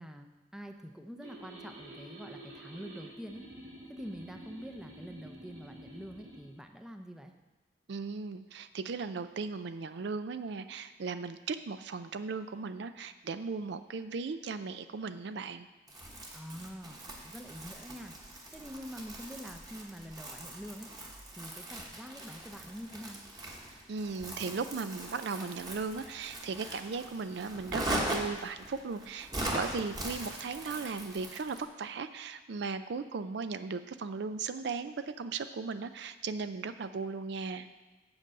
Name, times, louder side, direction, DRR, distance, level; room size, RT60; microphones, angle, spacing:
voice 1, 0.0-3.4 3.9-7.3 16.3-18.1 18.5-20.9 21.4-23.2, equal, 5° right, 5 dB, 0.5 m, -46 dB
sound 1, 1.2-6.4, right 1 dB, 80° right, 2.5 m, -49 dB
voice 2, 7.9-15.7 23.9-37.7, right 4 dB, 65° right, 11 dB, 0.4 m, -37 dB
Crumpling crinkling, 15.9-31.7, right 1 dB, 20° right, 1.2 m, -40 dB
7.8 x 5.4 x 7.4 m, 1.2 s
head